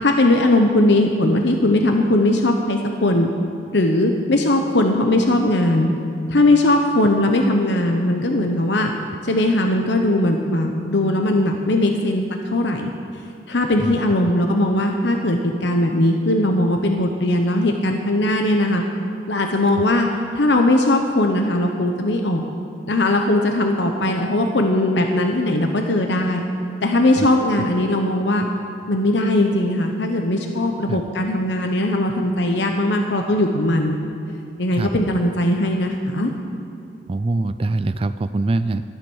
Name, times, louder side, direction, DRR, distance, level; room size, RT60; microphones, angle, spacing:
voice 1, 0.0-3.3 3.7-5.9 6.3-8.9 9.2-12.2 12.5-12.9 13.5-18.8 19.3-20.1 20.3-22.5 22.9-26.4 26.8-28.5 28.9-34.0 34.6-36.3, left 1 dB, 75° left, 3 dB, 1.0 m, -19 dB
voice 2, 37.1-38.8, right 2 dB, 30° right, 11 dB, 0.3 m, -23 dB
13.5 x 12.0 x 6.3 m, 2.8 s
head